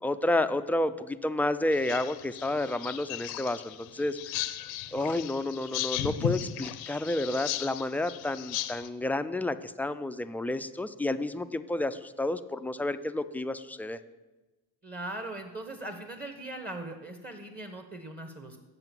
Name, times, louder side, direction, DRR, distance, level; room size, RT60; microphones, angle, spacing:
voice 1, 0.0-4.2 4.9-14.0, left 1 dB, 5° left, 10 dB, 0.4 m, -30 dB
sound 1, 1.7-8.9, left 12 dB, 75° left, 0.7 m, -36 dB
voice 2, 14.8-18.6, right 1 dB, 25° right, 6 dB, 1.2 m, -40 dB
7.9 x 6.9 x 7.5 m, 1.2 s
supercardioid pair, 90°, 37 cm